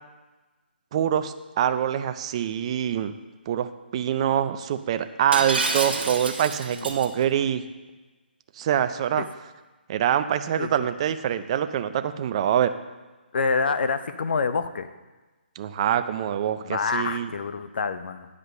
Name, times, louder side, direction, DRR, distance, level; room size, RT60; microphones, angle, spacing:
voice 1, 0.9-3.1 3.5-7.6 8.6-9.2 9.9-12.7 15.6-17.3, right 10 dB, 30° right, 11 dB, 0.4 m, -25 dB
Shatter, 5.3-7.1, right 3 dB, 65° right, 1.3 m, -28 dB
voice 2, 13.3-14.9 16.6-18.3, left 4 dB, 60° left, 11 dB, 0.6 m, -27 dB
9.6 x 5.0 x 6.5 m, 1.2 s
hypercardioid pair, 155°, 6 cm